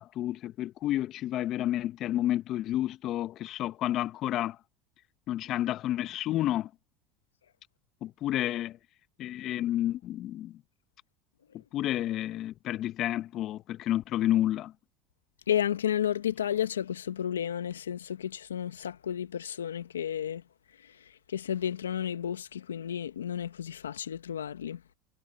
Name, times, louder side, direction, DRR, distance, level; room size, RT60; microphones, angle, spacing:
voice 1, 0.0-4.6 5.3-6.7 8.0-8.8 9.2-10.6 11.7-14.7, left 13 dB, 50° left, 1.4 m, -30 dB
voice 2, 15.5-20.4 21.3-24.8, left 9 dB, 90° left, 1.2 m, -32 dB
hypercardioid pair, 80°, 0 cm